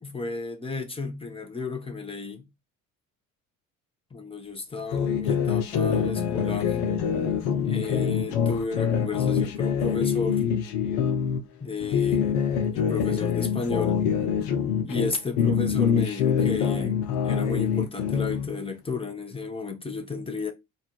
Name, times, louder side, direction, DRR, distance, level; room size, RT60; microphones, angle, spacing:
voice 1, 0.0-2.5 4.1-6.8 7.6-10.4 11.6-12.3 12.7-14.0 14.8-20.5, left 4 dB, 15° left, 1.2 m, -33 dB
sound 1, 4.9-11.4 11.8-15.1 15.4-18.5, left 7 dB, 60° left, 0.9 m, -25 dB
4.0 x 2.6 x 4.6 m
figure-of-eight pair, 55°, 41 cm